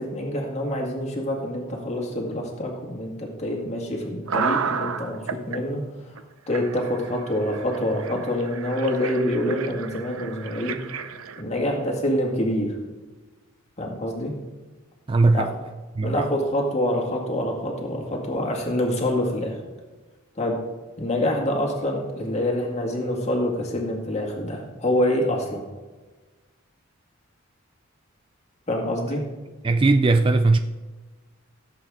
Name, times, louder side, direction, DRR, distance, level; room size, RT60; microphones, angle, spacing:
voice 1, 0.0-5.8 6.5-10.8 11.4-12.7 13.8-14.3 15.3-15.5 16.0-19.6 20.4-20.5 21.0-25.6 28.7-29.2, left 1 dB, 30° left, 2.0 m, -26 dB
sound 1, 4.3-5.6 6.2-6.3 6.5-11.4, right 6 dB, 75° right, 0.6 m, -32 dB
voice 2, 15.1-15.5 16.0-16.3 29.6-30.6, right 3 dB, 25° right, 0.3 m, -19 dB
16.0 x 7.7 x 3.7 m
head